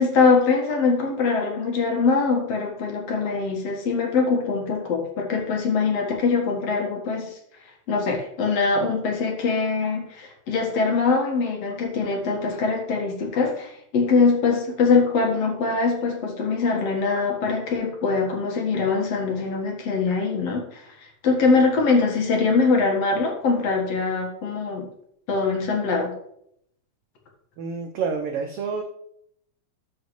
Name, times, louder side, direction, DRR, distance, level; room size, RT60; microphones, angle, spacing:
voice 1, 0.0-7.3 7.9-20.8 21.2-24.9 25.3-26.1, left 4 dB, 60° left, 1 dB, 2.5 m, -22 dB
voice 2, 27.6-28.8, right 5 dB, 80° right, 3 dB, 1.3 m, -28 dB
13.0 x 5.5 x 3.2 m, 0.71 s
omnidirectional pair, 3.4 m